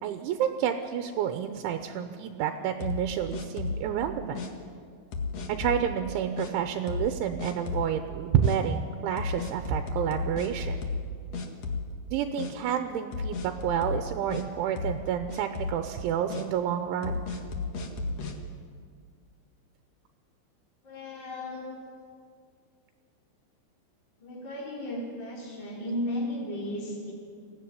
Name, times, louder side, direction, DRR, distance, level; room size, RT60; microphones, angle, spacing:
voice 1, 0.0-4.4 5.5-10.8 12.1-17.2, right 9 dB, 80° right, 7 dB, 3.2 m, -29 dB
sound 1, 2.8-3.9 4.3-4.5 5.1-5.9 6.4-6.5 6.9-7.1 7.4-7.9 8.4-8.6 9.2-11.1 11.3-12.1 12.4-12.5 13.1-14.4 14.8-15.0 15.3-15.8 16.3-16.4 17.0-18.3, left 4 dB, 55° left, 1.8 m, -33 dB
voice 2, 20.8-21.7 24.2-27.1, left 1 dB, 25° left, -5 dB, 4.3 m, -35 dB
23.5 x 16.0 x 9.8 m, 2.1 s
omnidirectional pair, 5.5 m